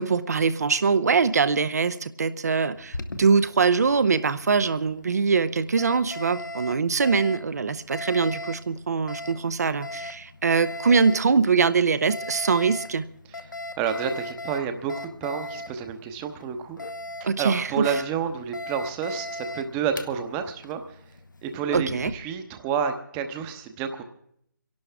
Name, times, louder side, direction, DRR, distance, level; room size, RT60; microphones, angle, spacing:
voice 1, 0.0-13.0 17.2-17.9 21.7-22.1, right 5 dB, 50° right, 15 dB, 0.7 m, -23 dB
Alarm, 2.8-22.1, left 2 dB, 70° left, 1.1 m, -39 dB
voice 2, 13.8-16.8 17.2-21.0 21.4-24.0, right 7 dB, 15° right, 7 dB, 0.9 m, -29 dB
26.5 x 11.5 x 3.5 m, 0.71 s
figure-of-eight pair, 150°, 11 cm